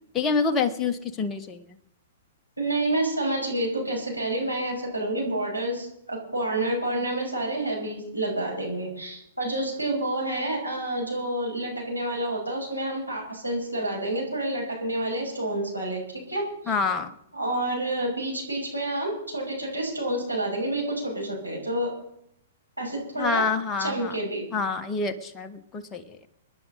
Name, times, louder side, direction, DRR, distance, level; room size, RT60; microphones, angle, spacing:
voice 1, 0.1-1.6 16.7-17.1 23.2-24.2 24.5-26.3, left 4 dB, 20° left, 6 dB, 1.2 m, -27 dB
voice 2, 2.6-16.7 17.3-21.9 22.8-23.4 23.8-24.4, right 1 dB, 90° right, -2 dB, 6.3 m, -29 dB
26.0 x 10.5 x 4.1 m, 0.75 s
figure-of-eight pair, 110°, 0 cm